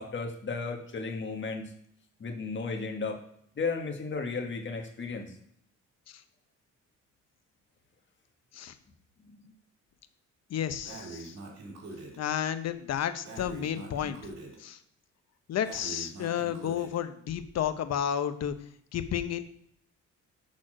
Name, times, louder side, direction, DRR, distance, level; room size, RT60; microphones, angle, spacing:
voice 1, 0.0-1.7 2.2-3.2 3.6-5.3 9.2-9.5, left 4 dB, 40° left, 3 dB, 1.5 m, -34 dB
voice 2, 10.5-11.4 12.2-14.2 14.6-14.8 15.5-18.6 18.9-19.4, left 9 dB, 60° left, 10 dB, 0.8 m, -31 dB
Breathing, 10.8-12.2 13.2-14.6 15.6-17.0, right 3 dB, 60° right, 2.4 m, -43 dB
6.4 x 4.2 x 6.2 m, 0.70 s
cardioid pair, 90°, 30 cm